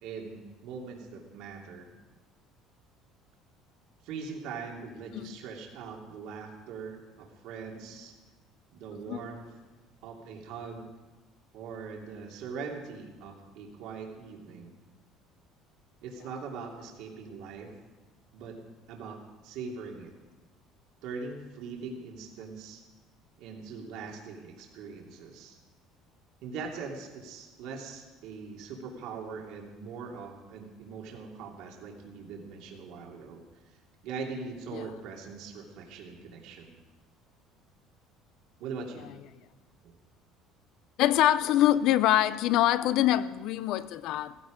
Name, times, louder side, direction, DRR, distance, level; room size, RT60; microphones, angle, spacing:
voice 1, 0.0-1.9 4.0-8.1 8.7-9.4 10.0-10.9 11.5-14.7 16.0-17.7 18.3-18.6 18.9-19.2 19.4-20.1 21.0-22.8 23.4-25.6 26.4-33.8 34.0-36.8 38.6-39.1, right 5 dB, 70° right, 0 dB, 2.9 m, -41 dB
voice 2, 41.0-44.4, left 13 dB, 60° left, 15 dB, 0.6 m, -24 dB
15.5 x 15.5 x 5.2 m, 1.3 s
cardioid pair, 155°, 0 cm